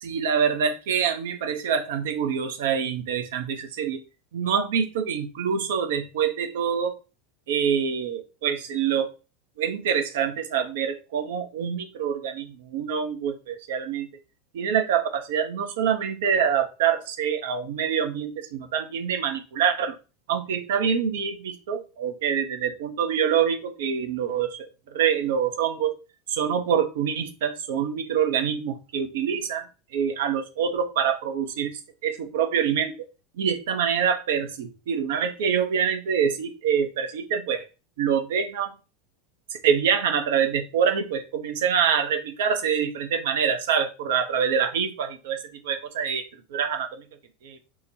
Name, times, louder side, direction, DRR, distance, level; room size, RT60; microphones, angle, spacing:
voice 1, 0.0-4.0 4.3-7.0 7.5-9.1 9.6-14.1 14.5-20.0 20.3-24.7 24.9-25.9 26.3-29.6 29.9-32.9 33.4-37.7 38.0-38.7 39.6-47.0 47.4-47.6, right 7 dB, 60° right, 7 dB, 0.5 m, -25 dB
4.6 x 2.1 x 2.6 m, 0.32 s
figure-of-eight pair, 80°, 0 cm